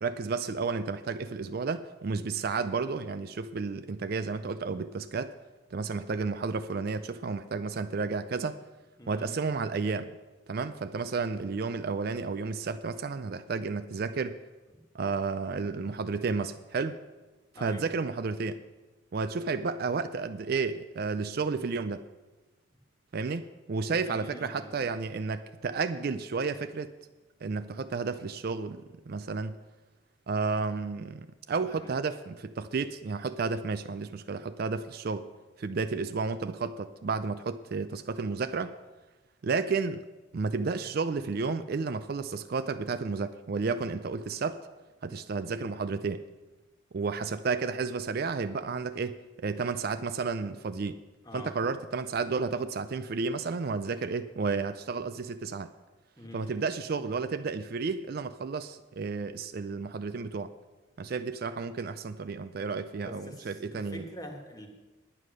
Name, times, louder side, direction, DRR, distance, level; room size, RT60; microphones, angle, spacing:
voice 1, 0.0-5.3 5.7-8.6 9.1-10.1 10.5-14.4 14.9-17.0 17.6-18.6 19.1-22.0 23.1-26.9 27.4-29.6 30.3-35.3 35.6-38.7 39.4-40.1 40.3-44.6 45.0-46.2 46.9-51.0 51.3-55.7 56.3-60.5 61.0-64.0, right 4 dB, 50° right, 11 dB, 0.4 m, -32 dB
voice 2, 9.0-9.4 17.5-17.9 23.8-24.8 31.7-31.9 51.2-51.5 56.2-56.7 63.0-64.7, equal, 20° left, 3 dB, 1.5 m, -45 dB
9.9 x 9.2 x 6.4 m, 1.2 s
head